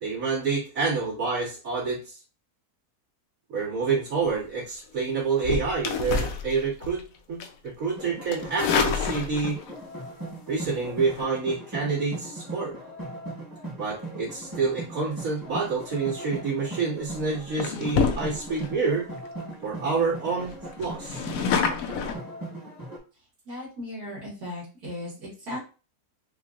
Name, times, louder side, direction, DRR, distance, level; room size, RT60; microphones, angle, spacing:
voice 1, 0.0-2.2 3.5-9.6 10.5-12.7 13.8-19.1 19.6-21.2, right 4 dB, 55° right, -8 dB, 2.4 m, -28 dB
sound 1, 5.4-7.0 7.4-7.7 8.3-9.7 11.0-11.2 16.3-16.5 17.0-17.2 17.6-18.7 19.2-19.3 19.5-19.6 20.0-20.1 20.4-22.2, left 5 dB, 70° left, 1.0 m, -28 dB
sound 2, 8.0-23.0, right 2 dB, 15° right, 1.1 m, -39 dB
voice 2, 23.5-25.6, left 1 dB, 75° right, -7 dB, 2.2 m, -36 dB
5.5 x 2.4 x 2.5 m, 0.34 s
omnidirectional pair, 1.7 m